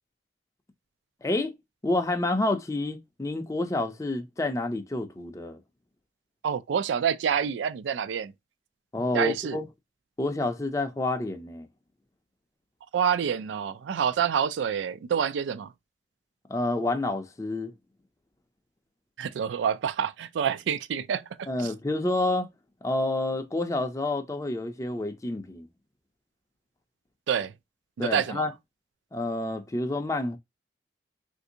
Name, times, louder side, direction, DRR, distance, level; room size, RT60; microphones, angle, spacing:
voice 1, 1.2-1.5 1.8-5.6 8.9-9.6 10.2-11.7 16.5-17.7 21.5-22.5 22.8-25.7 28.0-28.5 29.1-30.4, left 2 dB, 15° left, 0.4 m, -28 dB
voice 2, 6.4-8.3 9.1-9.6 12.9-15.7 19.2-21.7 27.3-27.5 28.0-28.5, right 7 dB, 85° right, 0.3 m, -27 dB
3.3 x 2.6 x 2.7 m
head